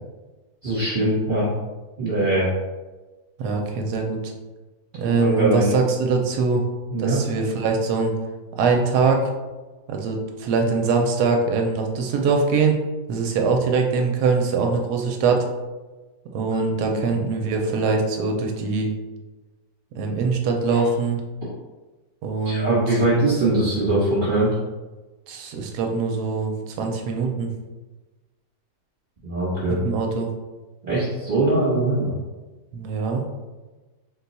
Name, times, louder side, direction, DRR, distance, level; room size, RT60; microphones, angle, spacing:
voice 1, 0.6-1.5 2.0-2.5 5.1-5.7 6.9-7.2 16.8-17.0 22.4-24.5 29.2-29.8 30.8-32.1, right 2 dB, 35° right, -10 dB, 1.1 m, -21 dB
voice 2, 3.4-4.2 4.9-6.6 7.0-8.2 8.6-9.2 9.9-12.8 13.1-15.4 16.3-18.9 20.0-21.2 22.2-23.0 25.3-27.5 29.7-30.3 32.7-33.2, right 4 dB, 75° right, 2 dB, 1.1 m, -22 dB
4.0 x 2.3 x 4.0 m, 1.2 s
omnidirectional pair, 1.8 m